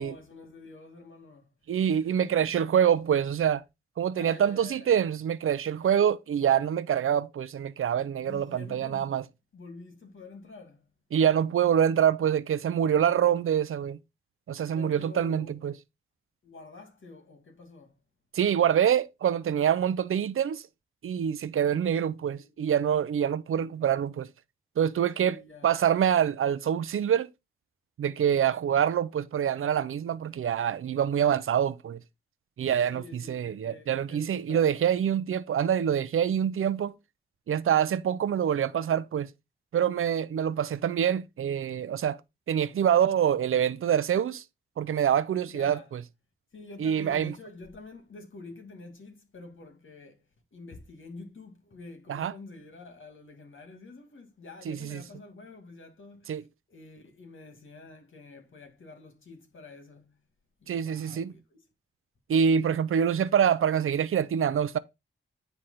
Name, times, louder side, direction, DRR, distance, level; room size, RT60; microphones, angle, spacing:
voice 1, 0.0-1.5 1.9-2.7 4.1-5.0 8.2-9.1 9.5-10.8 12.9-13.6 14.7-15.6 16.4-17.9 21.6-22.6 25.2-25.8 32.9-34.9 45.5-45.9 46.5-50.2 50.5-60.2 60.6-61.6, left 3 dB, 70° left, 2.3 m, -48 dB
voice 2, 1.7-3.6 4.0-9.2 11.1-14.0 14.5-15.7 18.3-20.6 21.0-24.3 24.8-27.3 28.0-32.0 32.6-36.9 37.5-39.3 39.7-42.2 42.5-44.4 44.8-46.0 46.8-47.3 52.1-52.3 54.7-55.0 56.3-56.4 60.7-61.3 62.3-64.8, right 9 dB, 80° right, 0.6 m, -25 dB
9.9 x 3.4 x 5.6 m
cardioid pair, 60°, 21 cm